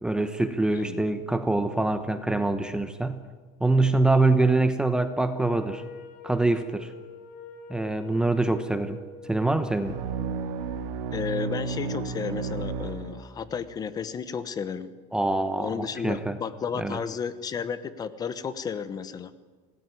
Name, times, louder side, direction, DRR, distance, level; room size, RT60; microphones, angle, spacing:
voice 1, 0.0-3.2 3.6-5.8 6.2-6.9 7.7-9.0 9.2-9.9 15.1-16.4 16.7-17.0, right 2 dB, 5° right, 9 dB, 1.0 m, -24 dB
Wind instrument woodwind instrument, 5.3-10.6, left 4 dB, 50° left, 4.7 m, -45 dB
sound 1, 9.8-13.7, right 5 dB, 75° right, 2.6 m, -32 dB
voice 2, 11.1-14.9 15.6-19.3, left 6 dB, 20° left, 13 dB, 1.1 m, -33 dB
26.5 x 19.0 x 9.8 m, 1.4 s
cardioid pair, 170°, 19 cm